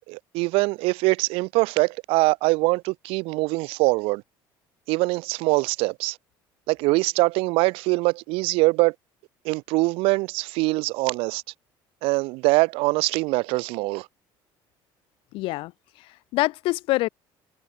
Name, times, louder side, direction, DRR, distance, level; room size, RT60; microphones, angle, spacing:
voice 1, 0.1-4.2 4.9-6.2 6.7-8.9 9.4-11.4 12.0-14.1, right 24 dB, 80° right, 2.2 m, -23 dB
voice 2, 15.3-17.1, left 20 dB, 70° left, 3.6 m, -26 dB
cardioid pair, 155°, 9 cm